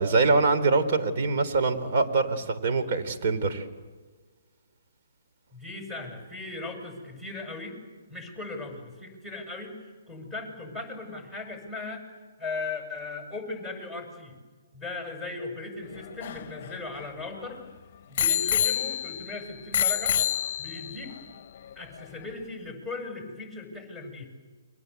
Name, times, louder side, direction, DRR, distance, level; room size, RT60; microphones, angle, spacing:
voice 1, 0.0-3.7, right 3 dB, 50° right, 8 dB, 3.6 m, -24 dB
voice 2, 5.5-7.8 8.1-12.0 12.4-14.3 14.7-17.6 18.1-20.2 20.6-21.2 21.8-24.3, left 3 dB, 5° right, 1 dB, 7.2 m, -38 dB
Bicycle bell, 15.9-17.5 18.2-19.3 19.7-21.0 21.7-21.8, left 10 dB, 45° left, 0.8 m, -27 dB
29.5 x 23.5 x 8.3 m, 1.4 s
hypercardioid pair, 135°, 0 cm